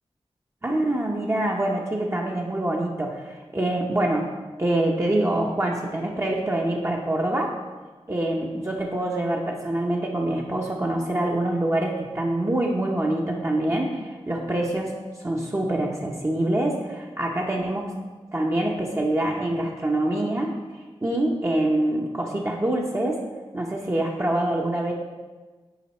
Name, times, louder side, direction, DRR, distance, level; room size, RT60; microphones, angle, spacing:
voice 1, 0.6-4.3 4.6-7.5 8.1-14.9 15.2-18.0 18.3-20.5 21.0-23.2 23.5-24.9, right 1 dB, 25° right, -2 dB, 0.8 m, -25 dB
9.9 x 3.3 x 4.2 m, 1.3 s
wide cardioid pair, 90°, 11 cm